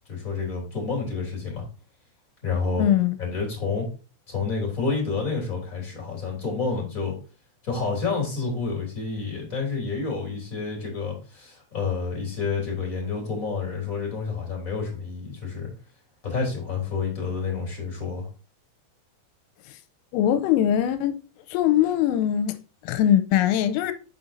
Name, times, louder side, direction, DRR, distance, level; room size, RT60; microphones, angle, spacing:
voice 1, 0.1-1.6 2.4-2.8 3.2-3.9 4.3-7.1 7.6-15.7 16.2-18.3, left 4 dB, 20° left, 2.6 m, -29 dB
voice 2, 2.8-3.2 20.1-21.2 21.5-23.9, left 11 dB, 90° left, 3.3 m, -22 dB
8.9 x 6.8 x 2.7 m
omnidirectional pair, 5.9 m